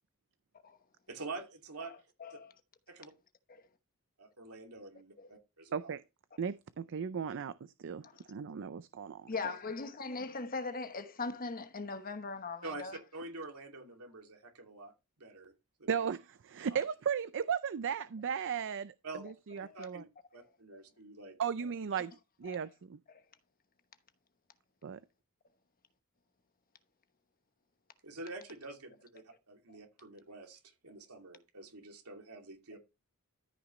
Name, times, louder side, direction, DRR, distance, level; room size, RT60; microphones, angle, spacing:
voice 1, 1.1-1.9 2.3-2.4 2.9-3.1 4.2-5.9 12.6-14.9 15.2-15.5 15.8-16.1 16.7-16.8 19.0-19.2 19.7-20.1 20.3-21.4 28.0-32.8, right 3 dB, 85° right, 2.7 m, -47 dB
voice 2, 1.8-2.5 5.2-5.3 8.0-8.2 9.3-13.0 19.7-19.8 20.7-20.8 22.0-22.1 22.5-22.6 23.1-23.2, left 4 dB, 40° left, 1.1 m, -40 dB
voice 3, 6.4-7.5 7.8-9.3 15.9-16.2 16.5-18.9 19.2-20.0 21.4-22.1 22.4-23.0 24.8-25.0, right 7 dB, 60° right, 0.5 m, -36 dB
13.5 x 6.0 x 3.1 m
head